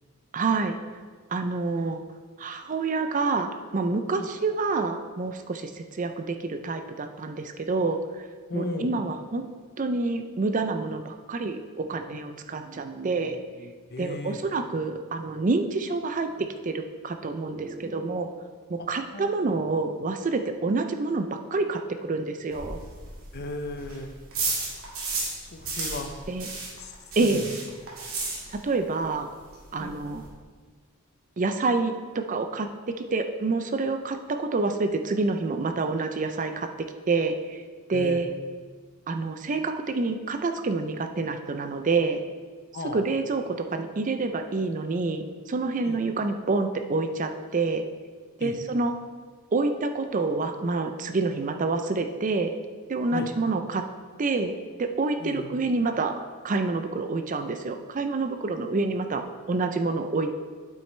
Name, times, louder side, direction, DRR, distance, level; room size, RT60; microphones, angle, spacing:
voice 1, 0.3-0.7 1.3-2.0 2.4-8.2 8.5-9.4 9.8-13.7 14.0-18.3 18.7-22.8 26.3-26.5 27.2-27.4 28.5-29.3 29.7-30.2 31.4-36.7 37.1-37.6 37.9-38.3 39.1-42.2 42.9-47.8 48.4-48.9 49.5-52.5 52.9-53.8 54.2-54.5 54.8-56.1 56.4-60.3, right 3 dB, 35° right, 7 dB, 0.5 m, -27 dB
voice 2, 8.5-8.9 13.9-14.4 19.1-19.3 23.3-24.1 25.4-26.1 26.8-26.9 27.2-27.4 29.8-30.0 37.9-38.2 42.7-43.0 45.8-46.0 48.4-48.5 53.1-53.3 55.2-55.5 58.7-59.0, left 2 dB, 50° left, 6 dB, 0.7 m, -35 dB
sound 1, 22.5-25.4 25.6-28.9 29.1-29.2 29.5-29.6 29.8-30.3, right 3 dB, 75° right, 2.2 m, -33 dB
8.9 x 7.5 x 3.2 m, 1.5 s
head